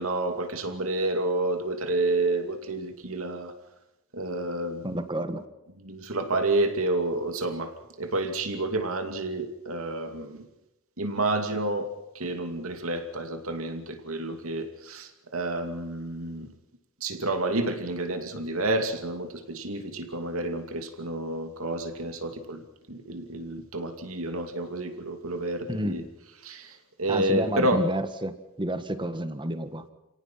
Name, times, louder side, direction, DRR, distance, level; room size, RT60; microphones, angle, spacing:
voice 1, 0.0-3.5 4.1-4.9 5.8-10.5 11.0-16.5 17.0-22.6 22.9-26.0 26.4-27.8, right 2 dB, 75° right, 6 dB, 2.7 m, -29 dB
voice 2, 4.8-5.4 25.7-26.0 27.1-29.9, right 1 dB, 20° right, 9 dB, 1.6 m, -30 dB
30.0 x 18.0 x 5.9 m, 0.92 s
head